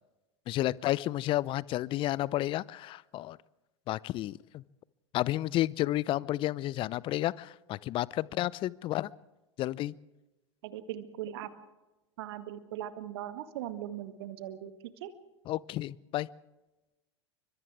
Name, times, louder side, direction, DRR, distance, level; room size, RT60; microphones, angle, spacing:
voice 1, 0.5-3.4 3.9-4.6 5.1-9.1 9.6-9.9 15.5-16.3, left 15 dB, 35° left, 22 dB, 0.7 m, -31 dB
voice 2, 10.6-11.5 12.2-14.7 15.0-15.1, right 12 dB, 55° right, 10 dB, 1.9 m, -39 dB
30.0 x 24.5 x 3.6 m, 1.1 s
figure-of-eight pair, 85°, 15 cm